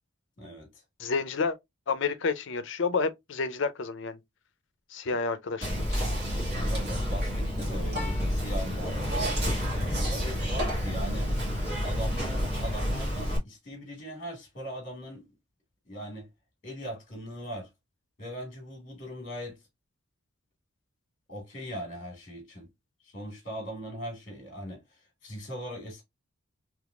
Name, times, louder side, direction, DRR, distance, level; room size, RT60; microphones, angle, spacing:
voice 1, 0.4-0.8 6.6-11.3 11.8-15.2 15.9-16.3 16.6-17.7 18.2-19.6 21.3-22.7 23.1-24.8 25.2-26.0, equal, 40° left, 1.6 m, -39 dB
voice 2, 1.0-1.6 1.9-4.2 4.9-6.0, left 4 dB, 55° left, 0.5 m, -30 dB
Whispering, 5.6-13.4, equal, 50° right, 1.6 m, -29 dB
3.5 x 3.0 x 2.3 m
head